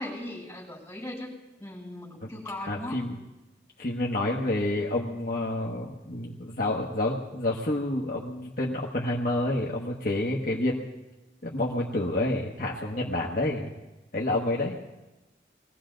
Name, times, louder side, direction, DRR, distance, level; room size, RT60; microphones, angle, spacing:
voice 1, 0.0-1.3 1.6-3.0, left 1 dB, 15° left, -7 dB, 7.1 m, -38 dB
voice 2, 2.7-3.2 3.8-10.8 11.4-13.7 14.1-14.8, left 1 dB, 50° left, -3 dB, 1.3 m, -29 dB
21.5 x 16.0 x 3.9 m, 1.1 s
head